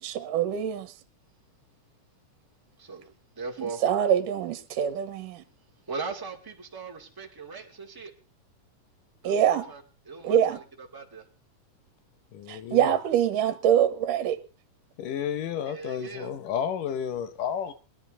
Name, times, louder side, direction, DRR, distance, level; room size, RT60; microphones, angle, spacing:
voice 1, 0.0-0.9 3.6-5.4 9.2-9.7 10.2-10.6 12.5-14.4, right 9 dB, 80° right, 2.6 m, -24 dB
voice 2, 3.4-3.8 5.9-8.1 9.2-11.2 15.6-16.3, right 4 dB, 10° right, 1.7 m, -39 dB
voice 3, 12.3-12.9 15.0-17.7, left 8 dB, 80° left, 2.8 m, -31 dB
21.5 x 11.0 x 3.9 m
omnidirectional pair, 3.8 m